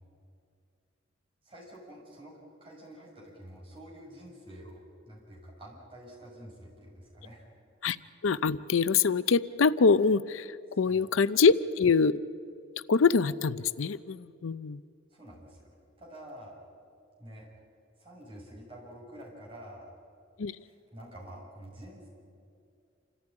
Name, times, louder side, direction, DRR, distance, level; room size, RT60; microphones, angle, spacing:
voice 1, 1.4-7.5 10.7-11.1 15.1-15.7 16.0-16.6 17.2-17.5 18.0-19.9 20.6-22.1, right 1 dB, 25° right, -5 dB, 6.7 m, -48 dB
voice 2, 8.2-10.5 10.8-12.2 12.9-14.8 20.4-20.6, left 5 dB, 80° left, 16 dB, 0.5 m, -24 dB
27.5 x 14.5 x 10.0 m, 2.4 s
head